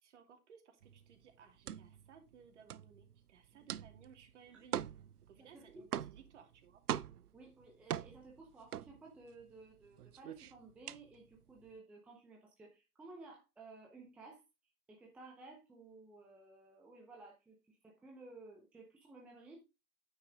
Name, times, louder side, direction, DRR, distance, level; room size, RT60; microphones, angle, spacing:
voice 1, 0.0-4.8 5.2-6.8, right 7 dB, 50° right, 5 dB, 2.7 m, -61 dB
sound 1, 0.8-9.5 9.8-11.7, right 10 dB, 75° right, 0.6 m, -43 dB
voice 2, 5.4-5.8 7.3-14.4 14.9-19.6, right 3 dB, 5° right, -1 dB, 0.6 m, -56 dB
9.5 x 6.6 x 3.5 m, 0.26 s
figure-of-eight pair, 135°, 46 cm